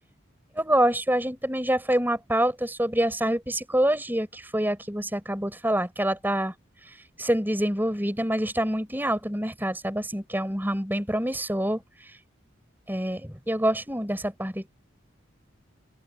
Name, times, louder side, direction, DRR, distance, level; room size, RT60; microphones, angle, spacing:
voice 1, 0.6-6.5 6.9-12.1 12.9-14.7, right 1 dB, 10° right, 4.1 m, -26 dB
open air
head